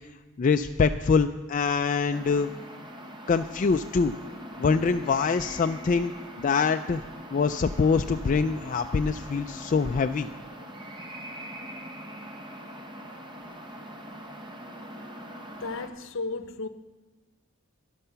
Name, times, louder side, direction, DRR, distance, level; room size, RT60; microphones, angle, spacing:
voice 1, 0.4-2.5 3.3-4.2 4.6-6.1 6.4-7.0 7.3-10.3, left 5 dB, 40° left, 0.3 m, -24 dB
sound 1, 2.1-15.9, equal, 25° right, 1.1 m, -42 dB
voice 2, 15.6-16.7, left 3 dB, 65° left, 0.8 m, -34 dB
12.5 x 11.0 x 5.8 m
head